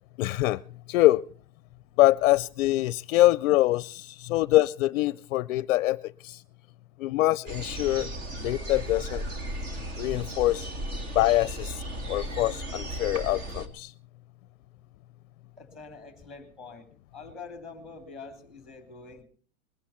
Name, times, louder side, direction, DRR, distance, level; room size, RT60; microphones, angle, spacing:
voice 1, 0.2-0.6 0.9-1.2 2.0-6.4 7.0-8.1 8.4-9.2 10.0-10.7 11.2-11.8 12.1-13.9, left 16 dB, 65° left, 19 dB, 0.6 m, -24 dB
sound 1, 7.5-13.7, right 1 dB, 35° right, 2.3 m, -35 dB
voice 2, 15.6-19.2, left 4 dB, ahead, 7 dB, 2.9 m, -45 dB
21.5 x 12.0 x 4.4 m, 0.43 s
supercardioid pair, 155°, 42 cm